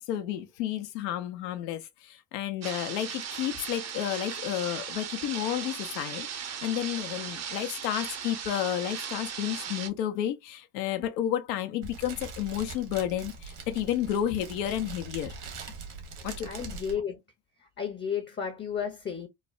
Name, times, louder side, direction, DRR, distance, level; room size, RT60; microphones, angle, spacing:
voice 1, 0.0-15.3 16.2-16.5, left 11 dB, 85° left, 0.6 m, -31 dB
sound 1, 2.6-9.9, right 8 dB, 35° right, 0.6 m, -37 dB
Fire, 11.8-16.9, right 4 dB, 60° right, 1.1 m, -42 dB
voice 2, 16.4-17.2 17.8-19.3, left 7 dB, 25° left, 0.6 m, -33 dB
3.1 x 2.0 x 2.4 m
hypercardioid pair, 65°, 48 cm